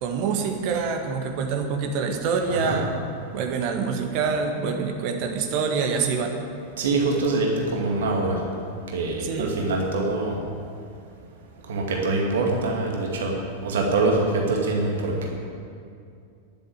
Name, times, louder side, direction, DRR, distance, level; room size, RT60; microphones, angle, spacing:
voice 1, 0.0-2.9 3.3-6.3 9.2-9.5, right 5 dB, 45° right, 3 dB, 1.7 m, -26 dB
voice 2, 6.8-8.4 8.9-10.4 11.7-13.3 13.6-15.3, right 3 dB, 60° right, -1 dB, 2.2 m, -24 dB
11.0 x 7.6 x 9.7 m, 2.4 s
figure-of-eight pair, 90°, 0 cm